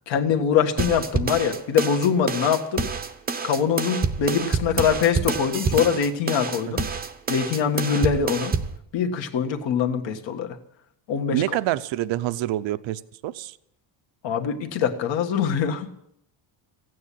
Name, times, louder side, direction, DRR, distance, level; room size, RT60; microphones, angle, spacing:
voice 1, 0.1-2.9 3.4-6.8 7.3-8.5 8.9-10.6 11.1-11.6 14.2-15.9, left 7 dB, 60° left, 5 dB, 1.7 m, -23 dB
sound 1, 0.8-8.8, right 5 dB, 20° right, 0.7 m, -27 dB
voice 2, 11.3-13.6, right 14 dB, 60° right, 14 dB, 0.7 m, -27 dB
16.0 x 9.5 x 8.5 m, 0.75 s
cardioid pair, 160°, 50 cm